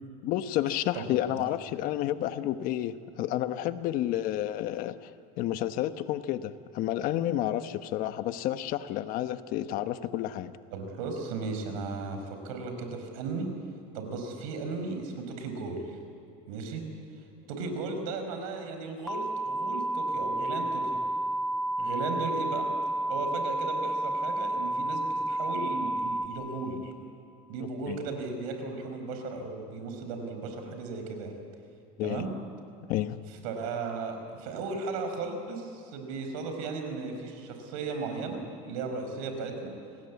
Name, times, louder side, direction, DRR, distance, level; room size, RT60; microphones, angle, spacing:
voice 1, 0.2-5.1 5.4-10.5 27.9-28.0 32.0-32.3 32.9-33.2, left 13 dB, 55° left, 11 dB, 1.1 m, -30 dB
voice 2, 0.9-1.4 10.7-13.5 13.9-16.0 16.5-16.8 17.5-21.0 21.8-22.7 23.1-26.9 27.5-31.3 32.0-32.3 33.4-38.4 38.7-39.7, right 4 dB, 80° right, 5 dB, 5.2 m, -36 dB
sound 1, 19.1-26.3, right 1 dB, 5° left, 1.3 m, -30 dB
28.0 x 19.5 x 8.5 m, 2.6 s
supercardioid pair, 135°, 17 cm